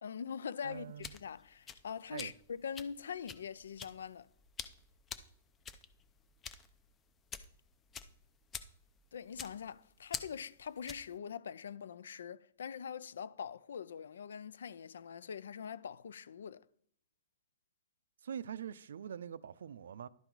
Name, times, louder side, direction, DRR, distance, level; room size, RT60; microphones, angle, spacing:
voice 1, 0.0-4.3 9.1-16.7, left 7 dB, 85° left, 0.4 m, -43 dB
voice 2, 0.6-1.1 2.1-2.3 18.2-20.1, right 8 dB, 80° right, 0.4 m, -44 dB
sound 1, 0.7-11.2, left 6 dB, 15° left, 0.4 m, -48 dB
11.5 x 4.5 x 3.9 m
hypercardioid pair, 155°, 0 cm